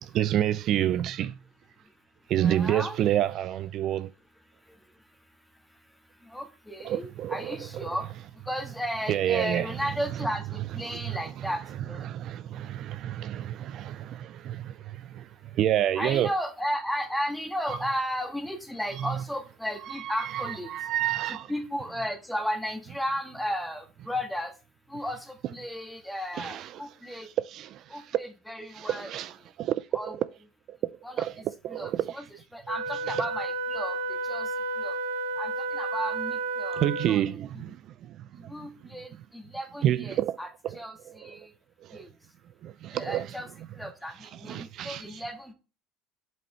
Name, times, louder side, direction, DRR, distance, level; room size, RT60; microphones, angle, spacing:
voice 1, 0.0-1.3 2.3-4.1 6.8-8.0 9.1-9.8 10.1-10.3 10.8-11.5 12.0-16.3 17.7-17.8 19.0-19.2 19.8-21.5 26.4-26.8 27.1-28.2 28.7-30.3 30.7-30.8 31.1-32.3 33.1-33.2 36.8-37.8 38.0-38.7 39.8-40.4 40.6-40.8 41.1-41.4 41.8-42.0 42.6-43.3 44.2-45.2, right 11 dB, 50° right, 0.4 m, -29 dB
voice 2, 2.4-3.0 6.3-8.0 8.5-12.1 16.0-20.7 21.5-24.5 24.9-27.3 27.9-29.1 29.9-30.2 31.0-31.3 31.7-32.2 32.5-34.0 34.3-34.5 34.8-34.9 35.4-37.2 37.5-37.6 38.5-40.5 40.7-41.5 41.9-42.1 42.9-43.5 43.8-45.5, equal, ahead, 1.6 m, -34 dB
Wind instrument woodwind instrument, 32.7-37.3, right 3 dB, 85° right, 1.3 m, -32 dB
7.3 x 5.3 x 3.2 m
supercardioid pair, 115°, 0 cm